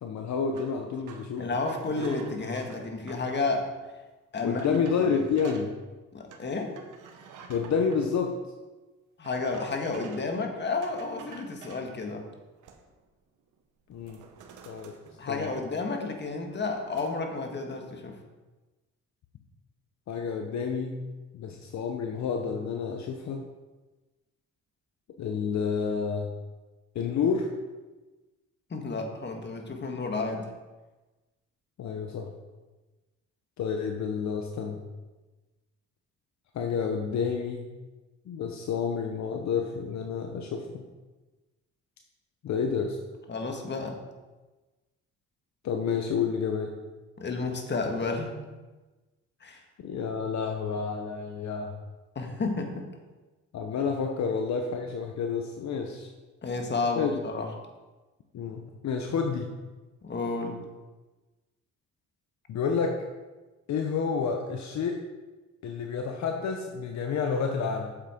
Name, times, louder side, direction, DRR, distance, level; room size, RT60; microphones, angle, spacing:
voice 1, 0.0-1.5 2.0-2.1 4.4-5.7 7.5-8.4 13.9-14.2 14.6-14.9 15.3-15.5 20.1-21.0 21.3-23.4 25.2-26.3 26.9-27.5 31.8-32.3 33.6-34.8 36.5-37.7 38.3-40.8 42.4-43.0 45.6-46.7 49.8-51.7 53.5-56.1 57.0-57.1 58.3-59.5 62.5-63.0 63.7-65.0 65.6-68.0, left 6 dB, 65° left, 3 dB, 1.0 m, -29 dB
sound 1, 0.5-3.4 4.0-4.1 4.6-5.7 6.3-8.0 9.2-10.4 10.8-11.9 12.4-13.1 13.4-13.6 13.9-15.8 16.1-17.1, right 6 dB, 80° right, 1.3 m, -50 dB
voice 2, 1.4-3.7 4.3-4.8 6.1-6.7 9.2-12.2 15.2-18.1 28.7-30.5 43.3-44.0 47.2-48.3 49.4-49.6 52.1-52.9 56.4-57.5 60.0-60.6, left 3 dB, 35° left, 3 dB, 1.7 m, -31 dB
8.7 x 7.6 x 4.5 m, 1.2 s
cardioid pair, 90°, 30 cm